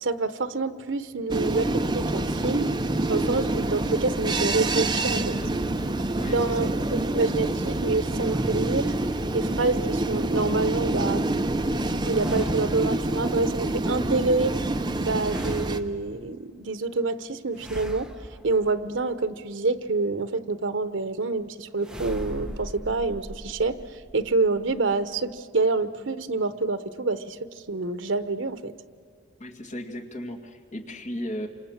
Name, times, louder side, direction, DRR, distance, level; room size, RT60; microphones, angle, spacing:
voice 1, 0.0-2.7 3.1-5.4 6.2-6.7 7.1-8.9 9.3-11.3 12.0-14.6 15.0-18.1 18.4-23.8 24.1-28.7, right 3 dB, 85° right, 12 dB, 1.0 m, -27 dB
sound 1, 1.3-15.8, right 2 dB, 25° right, 0.9 m, -27 dB
voice 2, 6.2-6.7 29.4-31.5, equal, 40° left, 3 dB, 2.2 m, -35 dB
sound 2, 8.2-9.7 12.1-13.2 15.2-16.4 17.5-19.3 21.8-25.4, equal, 5° right, 1.0 m, -40 dB
28.5 x 26.5 x 7.3 m, 2.3 s
head